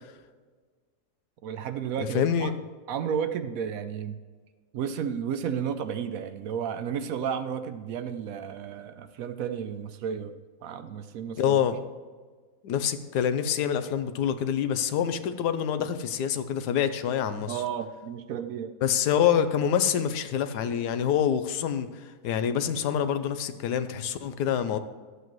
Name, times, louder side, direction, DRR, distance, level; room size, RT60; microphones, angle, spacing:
voice 1, 1.4-2.5 2.9-4.2 4.7-10.3 10.6-11.6 17.5-18.7, right 8 dB, 70° right, 9 dB, 0.9 m, -32 dB
voice 2, 2.0-2.5 11.4-11.8 12.6-17.6 18.8-21.9 22.2-24.8, left 8 dB, 85° left, 11 dB, 1.3 m, -26 dB
12.5 x 8.1 x 3.1 m, 1.5 s
omnidirectional pair, 1.7 m